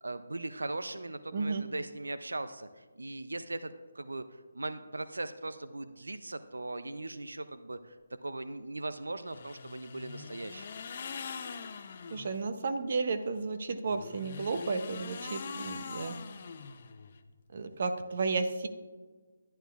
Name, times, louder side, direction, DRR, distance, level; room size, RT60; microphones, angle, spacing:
voice 1, 0.0-4.2 4.5-8.0 8.2-10.7, right 2 dB, 85° right, 11 dB, 0.4 m, -39 dB
voice 2, 1.3-1.6 12.1-16.2 17.5-18.7, right 4 dB, 50° right, 9 dB, 0.7 m, -33 dB
sound 1, 9.3-12.4 13.8-17.2, left 5 dB, 45° left, 0.6 m, -43 dB
11.0 x 9.0 x 2.4 m, 1.4 s
figure-of-eight pair, 155°, 0 cm